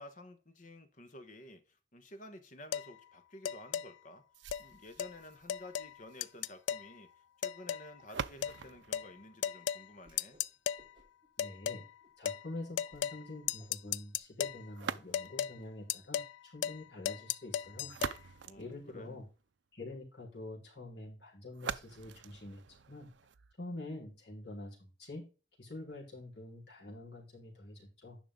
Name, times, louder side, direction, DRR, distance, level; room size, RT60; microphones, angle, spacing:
voice 1, 0.0-4.2 4.6-7.1 7.4-10.4 18.5-19.2, left 1 dB, 45° left, 1.4 m, -52 dB
sound 1, 2.7-2.9 3.5-3.9 4.5-4.7 5.0-5.1 5.5-5.9 6.2-6.9 7.4-7.9 8.4-8.6 8.9-9.1 9.4-9.8 10.2-10.8 11.4-11.8 12.3-12.4 12.8-13.2 13.5-14.6 15.1-15.6 15.9-16.3 16.6-16.8 17.1-18.2, left 9 dB, 80° left, 0.4 m, -35 dB
sound 2, 4.3-10.3 14.7-15.6 17.6-19.5 21.5-23.5, right 6 dB, 75° right, 0.5 m, -45 dB
Whoosh swoosh swish, 10.0-10.5 10.7-11.3 11.7-12.1 12.5-12.6 12.9-13.1 13.4-15.7, right 1 dB, 25° right, 3.6 m, -65 dB
voice 2, 11.4-11.8 12.2-17.9 18.2-19.3 19.7-22.6 22.9-23.1 23.6-25.3 25.6-28.2, left 2 dB, 60° left, 4.5 m, -46 dB
10.5 x 6.0 x 3.9 m
head